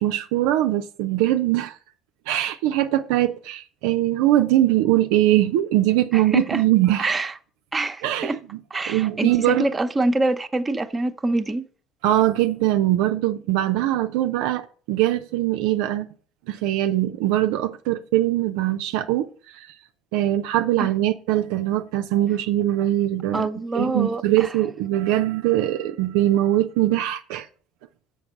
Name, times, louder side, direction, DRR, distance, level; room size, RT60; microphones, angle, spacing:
voice 1, 0.0-1.8 2.3-7.1 8.0-8.4 8.9-9.7 12.0-16.1 16.5-19.8 20.1-23.5 23.7-27.5, right 14 dB, 70° right, 0.5 m, -22 dB
voice 2, 6.1-6.6 7.0-7.3 7.7-8.4 8.7-11.6 20.8-20.9 23.3-24.5, right 2 dB, 20° right, 0.9 m, -25 dB
7.0 x 5.3 x 6.4 m
hypercardioid pair, 65°, 0 cm